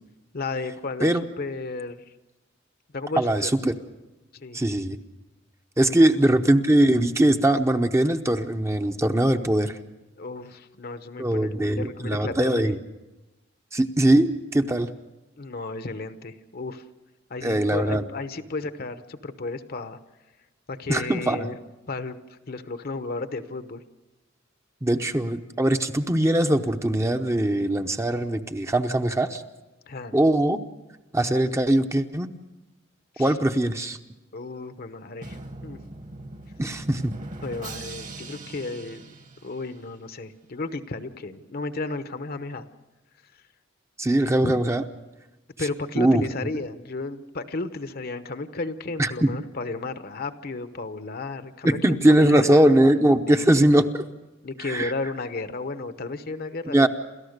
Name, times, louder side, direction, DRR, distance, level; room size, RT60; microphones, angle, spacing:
voice 1, 0.3-2.0 2.9-3.5 4.3-4.6 6.0-6.1 10.2-12.8 15.4-16.8 17.3-20.0 20.7-21.6 21.9-23.8 29.9-30.2 33.1-33.4 34.3-35.8 37.4-39.1 39.4-42.7 44.4-44.6 45.6-52.6 53.3-53.4 54.4-56.9, left 3 dB, 50° left, 10 dB, 1.0 m, -33 dB
voice 2, 3.2-3.7 4.5-5.0 5.8-9.8 11.2-12.8 13.7-14.9 17.4-18.0 20.9-21.5 24.8-29.4 30.1-30.6 31.1-32.3 33.2-34.0 36.6-37.1 44.0-44.8 45.9-46.2 49.0-49.3 51.6-54.1 54.6-54.9 56.7-56.9, right 1 dB, 15° right, 6 dB, 0.8 m, -21 dB
Drum, 35.2-40.1, right 2 dB, 40° right, 1.5 m, -41 dB
29.0 x 14.0 x 6.6 m, 1.1 s
head